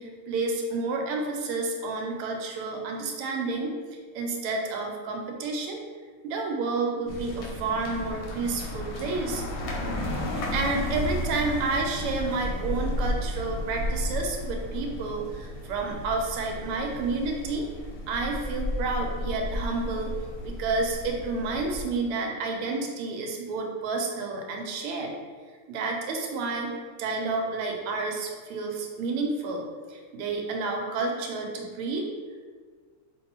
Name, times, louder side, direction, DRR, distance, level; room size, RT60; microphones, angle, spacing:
voice 1, 0.0-5.8 6.2-9.4 10.3-17.7 18.1-20.1 20.4-25.1 25.7-26.7 27.0-32.1, right 3 dB, 90° right, 1 dB, 1.5 m, -30 dB
sound 1, 7.1-21.8, left 1 dB, 90° left, 1.7 m, -33 dB
5.5 x 2.6 x 2.8 m, 1.5 s
omnidirectional pair, 2.4 m